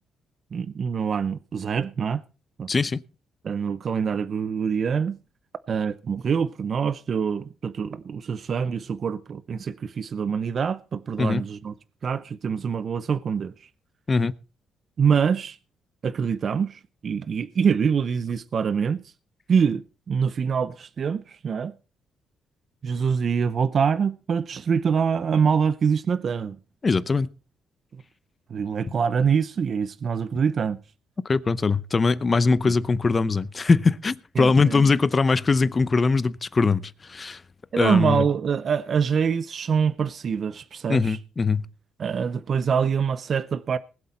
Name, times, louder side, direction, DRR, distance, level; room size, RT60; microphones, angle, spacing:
voice 1, 0.5-2.2 2.6-2.7 3.4-5.2 5.7-11.7 12.0-13.5 15.0-15.6 16.0-19.0 19.5-21.7 22.8-26.6 28.5-30.8 32.6-32.7 34.4-34.9 37.7-41.2 42.0-43.8, right 6 dB, 50° right, 0.6 m, -25 dB
voice 2, 2.7-3.0 11.2-11.4 14.1-14.3 26.8-27.3 31.2-37.4 37.8-38.2 40.9-41.7, left 4 dB, 30° left, 0.7 m, -21 dB
20.0 x 7.8 x 4.3 m
cardioid pair, 90°, 0 cm